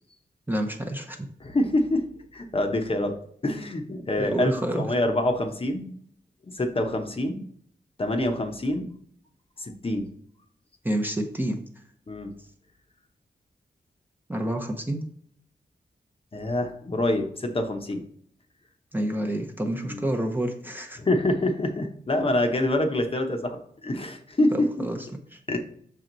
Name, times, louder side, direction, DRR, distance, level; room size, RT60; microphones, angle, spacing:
voice 1, 0.5-1.2 4.2-4.9 10.8-11.6 14.3-15.0 18.9-21.0 24.5-25.4, right 1 dB, 10° right, 2 dB, 0.7 m, -29 dB
voice 2, 1.4-3.1 3.4-6.0 6.5-7.5 8.0-9.0 9.6-10.1 12.1-12.3 16.3-18.0 19.8-20.0 21.0-24.6 25.5-25.6, left 1 dB, 30° left, 4 dB, 0.8 m, -26 dB
6.3 x 4.5 x 3.9 m, 0.62 s
wide cardioid pair, 155°, 17 cm